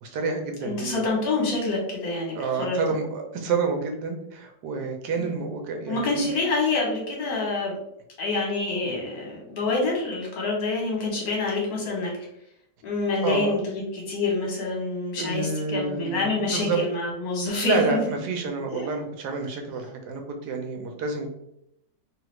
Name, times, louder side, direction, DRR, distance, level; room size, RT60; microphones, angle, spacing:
voice 1, 0.0-1.0 2.4-6.2 13.2-13.5 15.2-16.8 17.6-21.3, right 4 dB, 75° right, 3 dB, 1.2 m, -29 dB
voice 2, 0.6-2.8 5.2-5.4 5.9-7.7 8.2-12.1 12.8-18.0 18.7-18.9, left 3 dB, 60° left, -2 dB, 1.4 m, -27 dB
3.0 x 2.4 x 3.0 m, 0.77 s
omnidirectional pair, 1.9 m